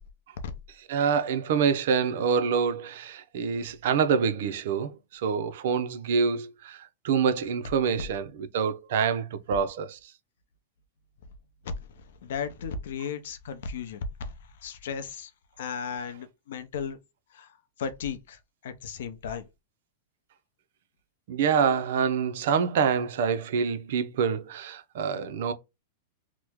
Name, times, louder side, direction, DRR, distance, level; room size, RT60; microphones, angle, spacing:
voice 1, 0.9-6.8 7.0-10.0 21.3-25.5, right 6 dB, 65° right, 0.5 m, -26 dB
voice 2, 12.2-14.0 14.6-15.3 15.6-17.0 17.4-17.5 17.8-18.4 18.6-19.4, left 6 dB, 70° left, 0.6 m, -35 dB
3.0 x 2.1 x 3.4 m
supercardioid pair, 155°, 0 cm